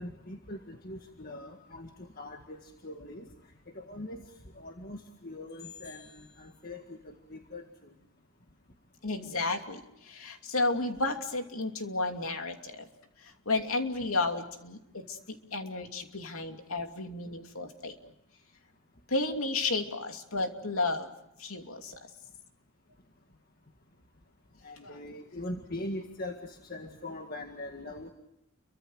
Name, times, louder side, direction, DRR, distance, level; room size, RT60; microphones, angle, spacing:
voice 1, 0.0-3.3 3.7-4.2 4.6-7.6 24.6-28.1, left 1 dB, 45° left, 3 dB, 1.9 m, -41 dB
voice 2, 9.0-12.9 13.2-18.0 19.1-21.1 21.4-22.0 24.8-25.0, left 3 dB, 80° left, 5 dB, 2.8 m, -32 dB
30.0 x 24.0 x 6.4 m, 0.83 s
head